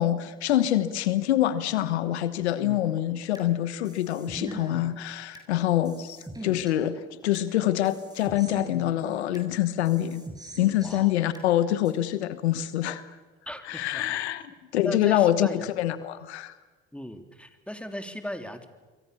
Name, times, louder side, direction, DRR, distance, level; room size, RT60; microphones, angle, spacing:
voice 1, 0.0-10.2 10.6-13.0 13.7-14.4 14.7-16.5, left 12 dB, 90° left, 14 dB, 1.2 m, -25 dB
sound 1, 2.6-3.5 3.8-5.5 5.8-7.5 7.8-9.5 9.8-11.5 11.8-11.9, right 1 dB, 10° right, 7.3 m, -42 dB
voice 2, 10.8-11.3 13.5-14.2 14.8-15.6 16.9-18.6, equal, 5° left, 7 dB, 3.5 m, -37 dB
28.0 x 23.5 x 7.0 m, 1.3 s
hypercardioid pair, 60°, 32 cm